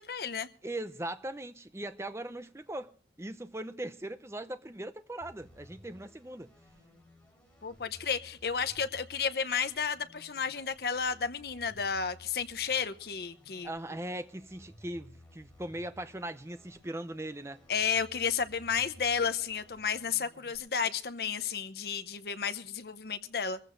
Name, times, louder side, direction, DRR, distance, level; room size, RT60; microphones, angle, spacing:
voice 1, 0.0-0.5 7.6-13.7 17.7-23.6, left 6 dB, 60° left, 0.7 m, -32 dB
voice 2, 0.6-2.9 3.2-6.5 13.6-17.6, right 1 dB, 15° right, 0.6 m, -39 dB
sound 1, 5.2-20.6, left 1 dB, 5° left, 4.2 m, -57 dB
23.5 x 15.0 x 2.6 m
head